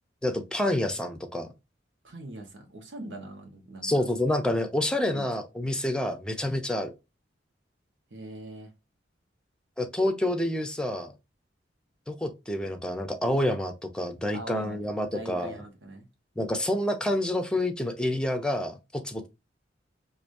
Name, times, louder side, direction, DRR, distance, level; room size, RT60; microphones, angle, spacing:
voice 1, 0.2-1.5 3.8-6.9 9.8-11.1 12.1-15.6 16.4-19.3, left 1 dB, 5° left, 0.6 m, -28 dB
voice 2, 2.0-3.9 5.1-5.2 8.1-8.7 14.3-16.1, right 1 dB, 85° right, 1.1 m, -42 dB
4.8 x 2.6 x 2.6 m
head